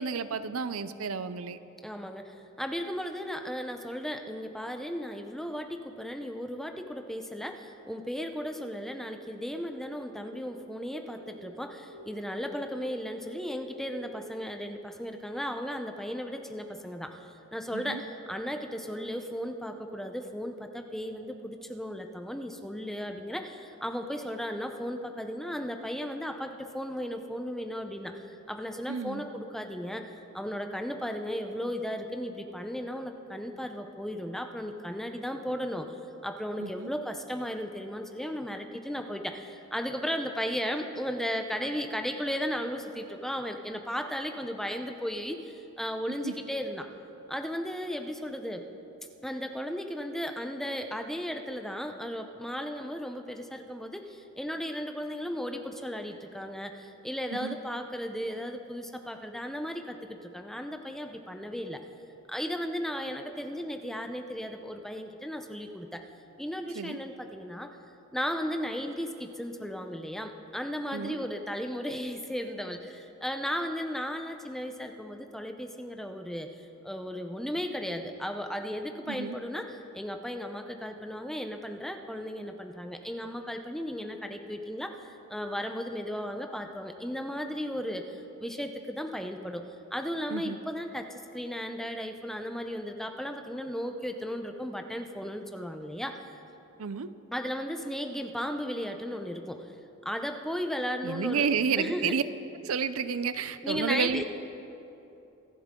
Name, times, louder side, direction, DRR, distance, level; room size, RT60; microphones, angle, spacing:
voice 1, 0.0-1.6 17.7-18.0 28.9-29.2 36.6-36.9 46.2-46.3 57.3-57.6 66.7-67.0 70.9-71.2 79.1-79.4 90.3-90.6 96.8-97.1 101.0-102.2 102.6-104.2, right 6 dB, 75° right, 13 dB, 0.5 m, -31 dB
voice 2, 1.8-35.9 36.2-46.9 47.3-48.7 49.2-61.8 62.3-66.0 66.4-67.7 68.1-89.6 89.9-96.3 97.3-99.7 100.0-101.5 101.8-102.2 103.6-104.2, equal, ahead, 5 dB, 0.7 m, -35 dB
sound 1, 8.3-14.3, right 2 dB, 50° right, 1.0 m, -51 dB
25.5 x 11.0 x 3.8 m, 2.9 s
head